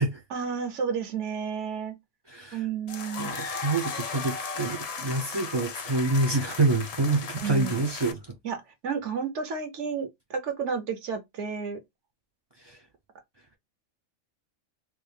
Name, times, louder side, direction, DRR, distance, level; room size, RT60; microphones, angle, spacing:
voice 1, 0.3-2.0 2.5-3.3 7.4-7.8 8.4-8.6 8.8-11.8, right 6 dB, 70° right, 1.1 m, -31 dB
voice 2, 2.3-2.7 3.2-8.4 12.6-12.8, right 2 dB, 40° right, 0.4 m, -27 dB
sound 1, 2.9-8.1, left 5 dB, 60° left, 0.4 m, -36 dB
3.1 x 2.3 x 3.3 m
omnidirectional pair, 1.3 m